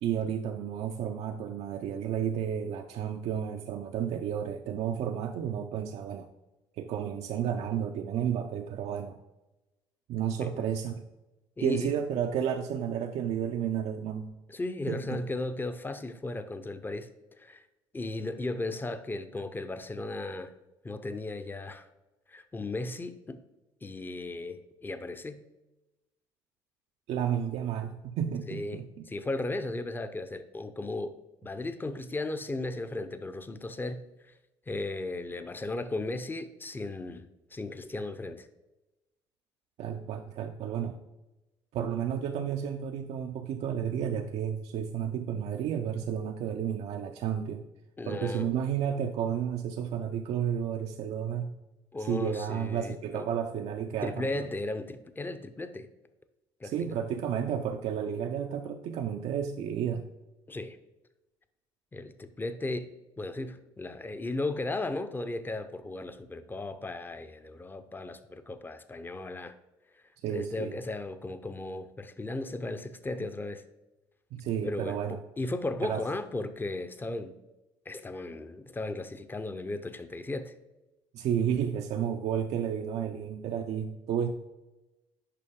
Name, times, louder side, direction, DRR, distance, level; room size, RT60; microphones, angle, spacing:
voice 1, 0.0-6.3 6.8-9.2 10.1-11.0 11.6-14.3 14.9-15.2 27.1-29.1 39.8-41.0 41.7-47.6 48.1-51.5 52.0-54.5 56.6-60.1 70.2-70.7 74.3-75.2 75.8-76.0 81.1-84.3, right 8 dB, 65° right, 5 dB, 0.5 m, -32 dB
voice 2, 11.6-11.9 14.5-17.1 17.4-17.6 17.9-20.5 20.8-21.9 22.3-23.4 23.8-25.4 28.5-31.1 31.4-34.1 34.7-38.5 48.0-48.5 51.9-53.2 54.0-55.9 56.6-57.0 60.5-60.8 61.9-62.9 63.2-69.6 69.9-70.0 70.3-73.6 74.6-77.4 77.9-80.5, left 2 dB, 15° left, 10 dB, 0.6 m, -36 dB
6.6 x 5.2 x 3.7 m, 1.0 s
supercardioid pair, 70°, 11 cm